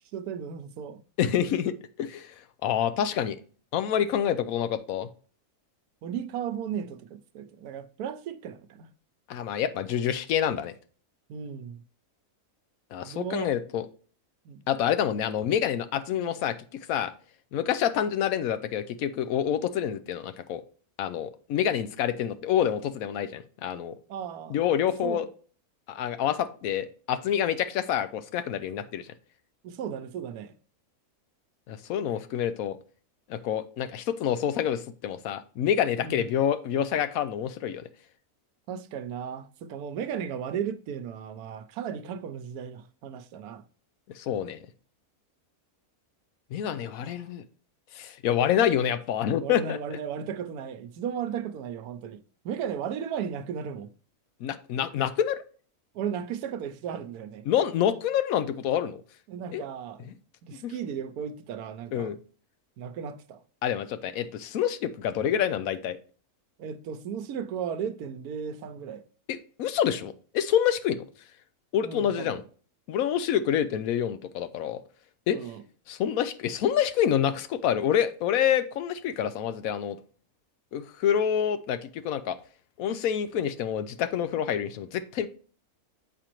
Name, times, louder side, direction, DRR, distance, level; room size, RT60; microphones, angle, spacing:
voice 1, 0.1-1.0 6.0-8.9 11.3-11.8 13.0-13.5 14.4-14.6 24.1-24.6 25.0-25.3 29.6-30.5 36.0-36.3 38.7-43.6 47.0-47.2 49.4-52.2 52.4-53.9 55.9-57.5 59.3-62.1 62.8-63.4 66.6-69.0 71.8-72.4 75.3-75.6, right 8 dB, 90° right, 1.1 m, -35 dB
voice 2, 1.2-2.3 2.6-3.4 3.7-5.1 9.3-10.7 12.9-13.9 14.7-16.6 16.9-17.1 17.5-20.6 21.0-23.9 24.5-25.3 25.9-29.1 31.7-32.8 33.3-37.8 44.2-44.6 46.5-47.4 47.9-49.8 54.4-55.4 57.5-59.0 59.5-59.6 60.6-60.7 61.9-62.2 63.6-66.0 69.3-71.0 71.7-72.4 72.9-74.8 75.3-75.4 75.9-80.0 80.7-82.4 82.8-85.3, left 9 dB, 75° left, 1.0 m, -27 dB
7.4 x 5.0 x 2.9 m
omnidirectional pair, 1.6 m